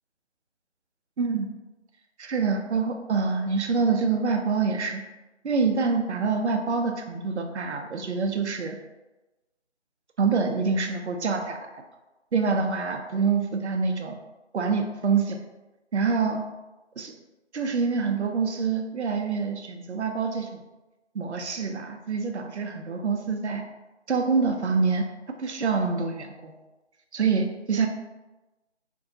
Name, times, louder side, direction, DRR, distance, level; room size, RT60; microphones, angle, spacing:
voice 1, 1.2-1.5 2.2-5.0 5.4-8.8 10.2-11.8 12.3-14.2 14.5-15.4 15.9-16.4 17.0-17.1 17.5-20.6 21.1-23.6 24.1-25.1 25.4-26.6 27.1-27.9, right 5 dB, 75° right, 4 dB, 0.5 m, -26 dB
2.6 x 2.2 x 2.6 m, 1.1 s
figure-of-eight pair, 170°, 34 cm